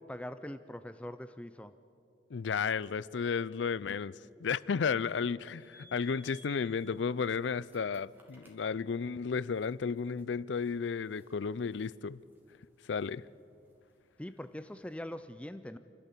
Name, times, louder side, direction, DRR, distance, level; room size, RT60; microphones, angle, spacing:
voice 1, 0.1-1.7 14.2-15.8, left 1 dB, 5° left, 0.4 m, -42 dB
voice 2, 2.3-4.1 4.4-12.2 12.9-13.2, left 5 dB, 80° left, 0.5 m, -33 dB
sound 1, 5.5-15.0, right 1 dB, 10° right, 2.8 m, -63 dB
29.0 x 12.5 x 8.3 m
head